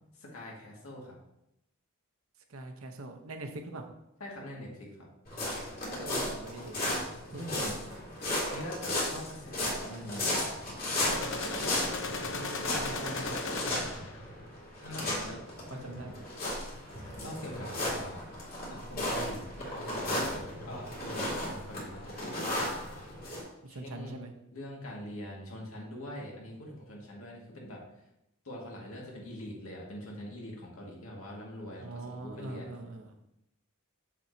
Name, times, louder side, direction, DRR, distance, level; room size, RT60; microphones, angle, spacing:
voice 1, 0.2-1.2 4.2-5.1 7.3-7.8 8.5-10.3 14.8-15.4 15.7-16.2 17.2-18.3 18.7-20.4 20.6-22.7 23.7-24.1 24.5-27.8 28.4-32.8, left 1 dB, 80° left, -2 dB, 2.0 m, -43 dB
voice 2, 2.5-3.8 5.9-6.8 7.3-7.6 12.3-13.8 15.8-16.1 23.6-24.3 31.8-33.1, right 2 dB, 70° right, 5 dB, 0.9 m, -43 dB
sound 1, 5.3-23.4, left 1 dB, 45° left, 2.5 m, -35 dB
sound 2, 11.0-14.2, left 3 dB, 65° left, 0.9 m, -35 dB
7.4 x 7.0 x 2.8 m, 0.85 s
head